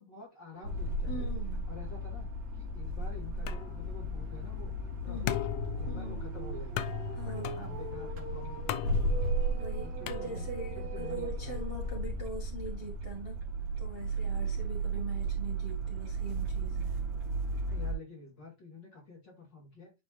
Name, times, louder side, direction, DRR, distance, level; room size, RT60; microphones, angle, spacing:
voice 1, 0.0-1.3 1.7-2.3 2.5-4.7 5.0-5.4 5.8-6.8 7.2-9.0 9.8-11.6 17.7-19.9, left 3 dB, 35° left, 3.1 m, -49 dB
sound 1, 0.5-0.9 1.3-1.4 1.8-1.9 4.0-12.0, right 3 dB, 65° right, 3.1 m, -46 dB
sound 2, 0.6-17.9, right 2 dB, 85° right, 3.3 m, -35 dB
voice 2, 1.1-1.7 5.1-5.4 5.8-6.3 7.1-7.7 9.5-13.4 13.8-17.0, right 1 dB, 20° right, 1.7 m, -42 dB
sound 3, 3.5-10.8, left 13 dB, 75° left, 1.7 m, -40 dB
11.0 x 4.2 x 2.5 m
omnidirectional pair, 3.4 m